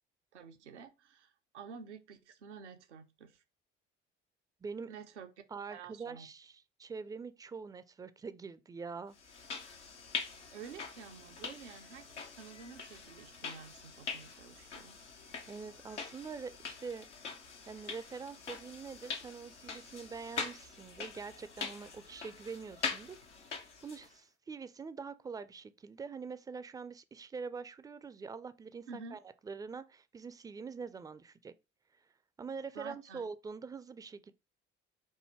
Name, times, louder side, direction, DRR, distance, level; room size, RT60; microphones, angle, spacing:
voice 1, 0.3-3.4 4.9-5.3 5.7-6.3 10.5-15.0 28.9-29.2 32.7-33.3, right 6 dB, 80° right, 0.6 m, -50 dB
voice 2, 4.6-4.9 5.5-9.2 15.5-17.1 17.7-23.2 23.8-31.5 32.4-34.3, right 5 dB, 10° right, 0.3 m, -44 dB
sound 1, 9.2-24.1, left 5 dB, 90° left, 0.7 m, -43 dB
4.6 x 2.7 x 4.3 m
figure-of-eight pair, 50°, 34 cm